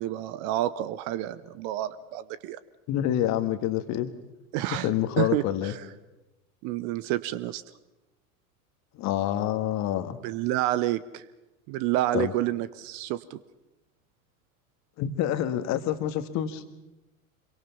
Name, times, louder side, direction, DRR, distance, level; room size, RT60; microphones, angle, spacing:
voice 1, 0.0-2.6 4.5-4.9 5.2-5.8 6.6-7.6 10.2-11.2 11.7-13.4, right 14 dB, 40° right, 16 dB, 0.9 m, -29 dB
voice 2, 2.9-4.1 4.7-5.7 8.9-10.2 12.1-12.3 15.0-16.6, left 11 dB, 40° left, 10 dB, 1.8 m, -27 dB
26.5 x 23.5 x 5.7 m, 1.0 s
figure-of-eight pair, 85°, 42 cm